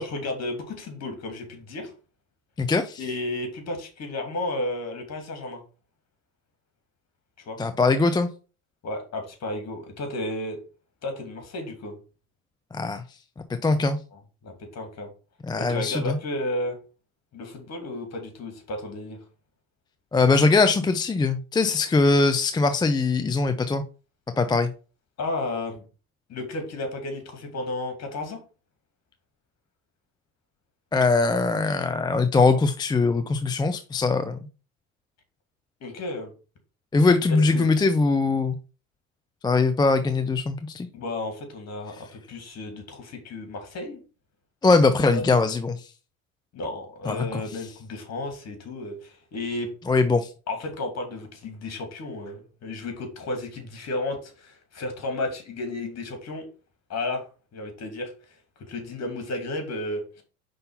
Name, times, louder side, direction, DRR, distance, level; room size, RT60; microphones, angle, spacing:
voice 1, 0.0-1.9 3.0-5.6 7.4-7.6 8.8-10.6 11.0-12.0 14.1-15.1 15.6-16.8 17.3-19.2 25.2-25.8 26.3-28.4 35.8-36.3 37.3-37.7 40.9-44.0 45.1-45.3 46.5-49.7 50.5-56.5 56.9-57.2 57.5-58.1 58.6-60.2, left 2 dB, 40° left, 5 dB, 2.5 m, -33 dB
voice 2, 2.6-3.0 7.6-8.3 12.7-13.0 13.6-14.0 15.5-16.2 20.1-23.8 24.4-24.7 30.9-34.4 36.9-38.6 39.4-40.9 44.6-45.8 47.1-47.4 49.9-50.3, left 3 dB, 10° left, 8 dB, 0.4 m, -21 dB
5.4 x 3.9 x 5.6 m, 0.35 s
hypercardioid pair, 80°, 40 cm